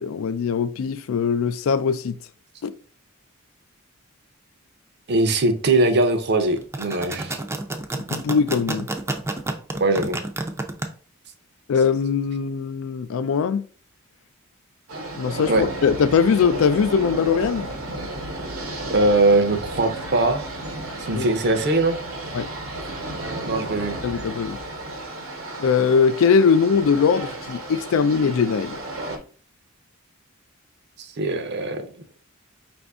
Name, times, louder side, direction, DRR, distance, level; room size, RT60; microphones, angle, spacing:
voice 1, 0.0-2.2 2.6-2.7 8.1-8.9 11.7-13.6 15.1-17.7 21.1-21.3 22.3-22.5 24.0-24.6 25.6-28.8, left 6 dB, 70° left, 0.3 m, -21 dB
voice 2, 5.1-7.4 9.7-10.2 15.5-15.6 18.9-20.4 21.1-22.0 23.4-24.0 31.0-31.9, right 2 dB, 55° right, 0.6 m, -21 dB
sound 1, 6.6-10.9, right 2 dB, 15° right, 0.4 m, -29 dB
sound 2, 14.9-29.2, right 2 dB, 85° right, 1.1 m, -33 dB
5.0 x 2.6 x 3.4 m
head